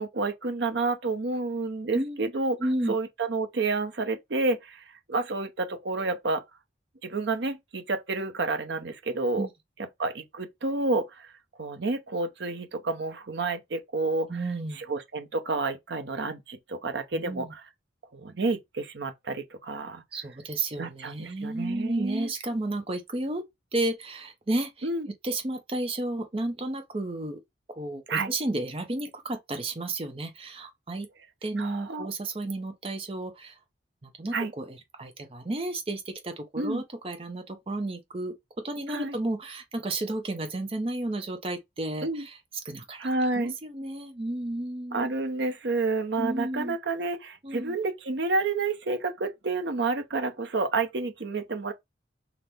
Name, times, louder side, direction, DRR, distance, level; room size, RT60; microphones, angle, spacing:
voice 1, 0.0-2.6 2.9-6.4 7.0-9.5 10.0-11.3 11.6-14.3 14.7-17.6 18.1-20.0 20.8-22.3 24.8-25.1 28.1-28.3 31.6-32.1 34.3-34.5 36.6-36.8 38.9-39.2 42.0-42.2 43.0-43.6 44.9-51.7, right 3 dB, 70° right, 0.7 m, -29 dB
voice 2, 2.6-2.9 9.4-9.5 14.3-14.8 17.1-17.5 20.1-23.4 23.7-24.9 25.2-27.4 27.7-31.1 31.4-33.6 34.0-38.4 38.6-42.4 42.6-43.1 43.3-45.1 46.2-46.8 47.4-47.8, right 2 dB, 30° right, 0.6 m, -32 dB
5.8 x 2.1 x 3.4 m
head